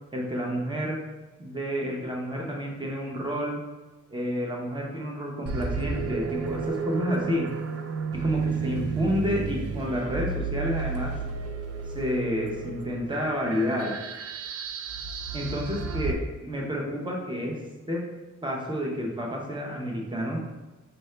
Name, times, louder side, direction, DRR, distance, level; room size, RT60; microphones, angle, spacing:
voice 1, 0.1-1.0 1.4-3.6 4.1-7.5 8.1-11.2 11.9-14.0 15.3-17.6 17.9-18.0 18.4-20.4, equal, 15° right, -1 dB, 0.8 m, -30 dB
sound 1, 5.5-16.1, right 4 dB, 55° right, 0.4 m, -32 dB
5.5 x 2.6 x 3.2 m, 1.2 s
wide cardioid pair, 140°, 30 cm